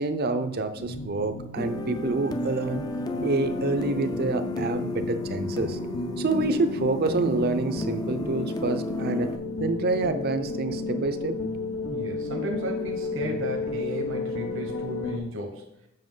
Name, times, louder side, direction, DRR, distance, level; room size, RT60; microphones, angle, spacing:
voice 1, 0.0-2.8 3.2-5.8 6.2-9.3 9.6-11.4, right 3 dB, 50° right, 9 dB, 0.6 m, -27 dB
sound 1, 0.8-15.2, left 3 dB, 85° left, 0.8 m, -34 dB
sound 2, 1.6-9.4, left 2 dB, 20° left, 0.4 m, -33 dB
voice 2, 11.9-15.6, equal, 65° right, 2 dB, 1.0 m, -34 dB
7.6 x 5.4 x 3.8 m, 0.83 s
head